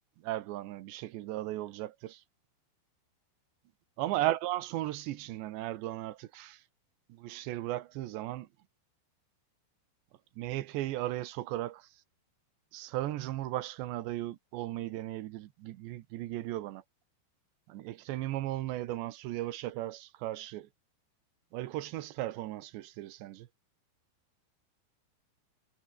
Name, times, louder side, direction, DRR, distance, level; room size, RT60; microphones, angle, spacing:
voice 1, 0.2-2.2 4.0-6.6 7.1-8.5 10.4-11.9 12.7-16.8 17.7-20.7 21.5-23.5, right 15 dB, 75° right, 3.3 m, -36 dB
omnidirectional pair, 5.3 m